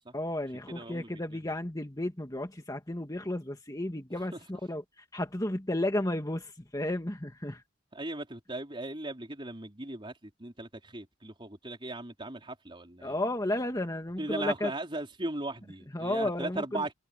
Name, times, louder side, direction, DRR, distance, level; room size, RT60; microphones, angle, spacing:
voice 1, 0.1-4.8 5.1-7.6 13.0-14.7 15.9-16.8, left 1 dB, 20° left, 1.8 m, -33 dB
voice 2, 0.7-1.5 4.3-4.4 7.9-13.2 14.2-16.9, right 2 dB, 25° right, 4.0 m, -38 dB
head